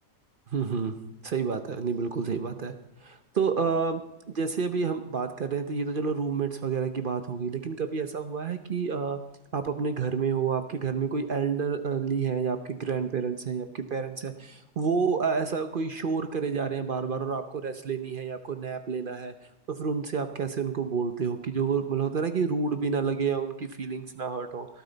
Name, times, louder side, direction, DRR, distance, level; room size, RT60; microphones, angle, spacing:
voice 1, 0.5-0.9 1.2-2.7 3.0-4.0 4.3-9.2 9.5-19.3 19.7-24.7, right 5 dB, 65° right, 8 dB, 0.5 m, -29 dB
17.5 x 13.5 x 4.0 m, 0.88 s
omnidirectional pair, 1.9 m